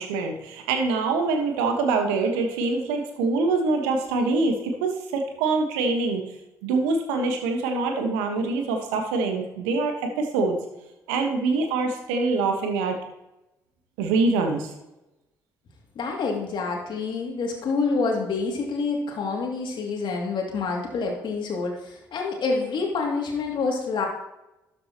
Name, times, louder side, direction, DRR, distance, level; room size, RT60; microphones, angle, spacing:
voice 1, 0.0-6.2 6.6-10.6 11.1-13.0 14.0-14.7, right 3 dB, 80° right, 4 dB, 1.4 m, -24 dB
voice 2, 15.9-24.1, left 4 dB, 55° left, 0 dB, 2.6 m, -27 dB
12.5 x 7.4 x 3.0 m, 0.92 s
hypercardioid pair, 50°, 10 cm